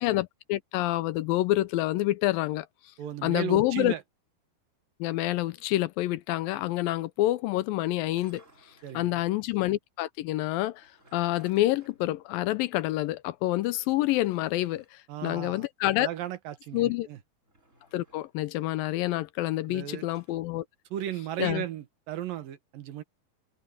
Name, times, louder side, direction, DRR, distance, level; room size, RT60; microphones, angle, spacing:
voice 1, 0.0-2.7 3.2-3.9 5.0-8.4 8.9-16.1 16.7-17.1 17.9-20.7 21.4-21.6, left 16 dB, 80° left, 2.3 m, -27 dB
voice 2, 3.0-4.0 8.8-9.2 15.1-15.7 16.0-17.2 19.7-20.0 20.9-23.0, right 11 dB, 70° right, 3.0 m, -35 dB
sound 1, 8.0-9.1 10.6-12.9 13.2-13.3 14.0-14.9 17.4-18.4 19.8-20.4, right 2 dB, 20° right, 5.7 m, -61 dB
omnidirectional pair, 4.3 m